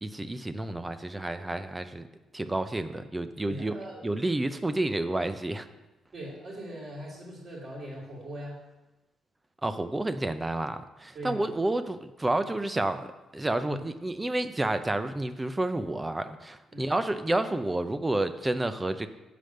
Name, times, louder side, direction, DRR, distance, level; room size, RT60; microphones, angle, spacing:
voice 1, 0.0-2.1 2.3-3.8 4.0-5.7 9.6-19.1, right 2 dB, 15° right, 10 dB, 0.6 m, -30 dB
voice 2, 3.5-4.0 6.1-8.6 11.1-11.5 13.6-13.8 16.7-16.9, equal, 45° right, -8 dB, 3.3 m, -40 dB
7.7 x 5.0 x 6.5 m, 1.1 s
cardioid pair, 90°, 0 cm